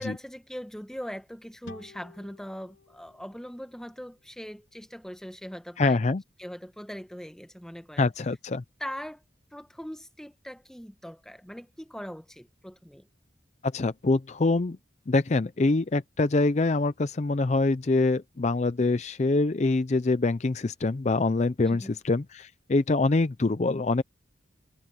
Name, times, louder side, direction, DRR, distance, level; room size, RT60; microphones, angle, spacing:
voice 1, 0.0-6.1 6.4-8.1 8.5-9.2 9.5-13.1 21.7-22.0, equal, 5° left, 1.1 m, -41 dB
sound 1, 1.6-5.0, left 2 dB, 85° left, 3.3 m, -53 dB
voice 2, 5.8-6.2 8.0-8.6 13.6-14.8 15.1-24.0, left 3 dB, 35° left, 0.5 m, -25 dB
head